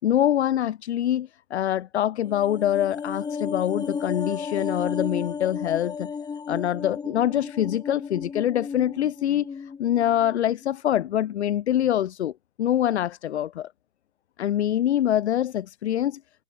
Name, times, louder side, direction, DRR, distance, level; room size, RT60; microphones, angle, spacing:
voice 1, 0.0-6.1 6.5-12.3 12.6-13.7 14.4-16.2, left 11 dB, 55° left, 3.5 m, -25 dB
sound 1, 2.2-10.7 11.0-11.1, left 5 dB, 10° left, 2.0 m, -34 dB
figure-of-eight pair, 115°, 39 cm